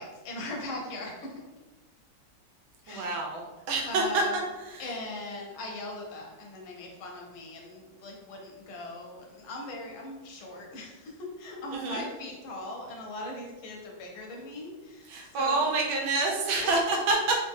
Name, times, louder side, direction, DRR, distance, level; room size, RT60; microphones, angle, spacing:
voice 1, 0.0-1.4 2.8-3.2 3.9-4.3 4.8-11.1 11.4-15.7 16.6-16.7, left 2 dB, 80° left, 0 dB, 1.7 m, -40 dB
voice 2, 2.9-3.4 3.7-4.2 4.7-4.8 11.7-12.0 15.1-17.4, right 3 dB, 80° right, 0 dB, 1.6 m, -27 dB
4.1 x 2.7 x 3.5 m, 1.2 s
omnidirectional pair, 2.2 m